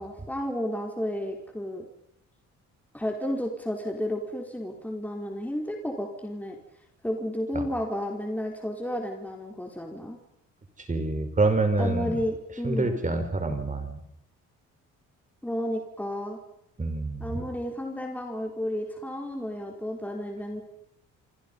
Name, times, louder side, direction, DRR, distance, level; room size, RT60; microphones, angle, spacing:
voice 1, 0.0-1.8 2.9-6.6 7.0-10.2 11.8-13.0 15.4-16.4 17.2-20.6, equal, 5° left, 1 dB, 4.7 m, -32 dB
voice 2, 10.9-12.1 12.6-14.0 16.8-17.4, right 3 dB, 25° right, 7 dB, 5.3 m, -26 dB
27.0 x 25.0 x 5.6 m, 0.77 s
cardioid pair, 90°, 30 cm